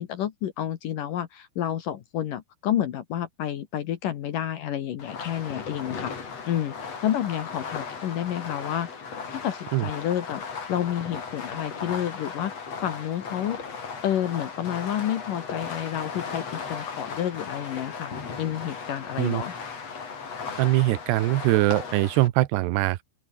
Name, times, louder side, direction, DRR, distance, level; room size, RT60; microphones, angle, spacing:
voice 1, 0.0-6.1 6.5-8.9 9.2-10.4 10.7-12.5 12.8-13.6 14.0-19.5, left 11 dB, 65° left, 2.1 m, -30 dB
Fireworks, 5.0-22.3, left 5 dB, 35° left, 4.2 m, -37 dB
voice 2, 20.6-23.0, right 17 dB, 70° right, 2.8 m, -22 dB
open air
omnidirectional pair, 5.6 m